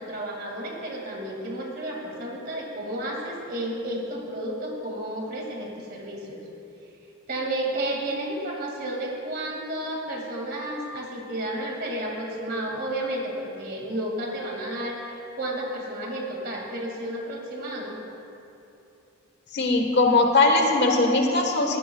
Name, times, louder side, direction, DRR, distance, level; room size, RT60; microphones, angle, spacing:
voice 1, 0.0-6.4 7.3-18.0, right 1 dB, 45° right, 0 dB, 2.2 m, -32 dB
voice 2, 19.5-21.8, left 2 dB, 50° left, 2 dB, 1.4 m, -20 dB
21.5 x 16.0 x 2.3 m, 2.7 s
head